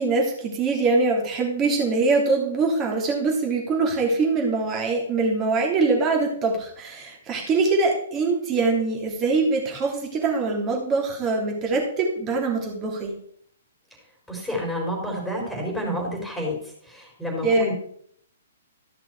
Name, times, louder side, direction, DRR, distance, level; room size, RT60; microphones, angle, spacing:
voice 1, 0.0-13.1 17.4-17.7, right 3 dB, 25° right, 0 dB, 2.8 m, -23 dB
voice 2, 14.3-16.5 16.8-17.7, equal, ahead, -1 dB, 4.2 m, -29 dB
13.5 x 6.0 x 4.6 m, 0.66 s
figure-of-eight pair, 120°, 0 cm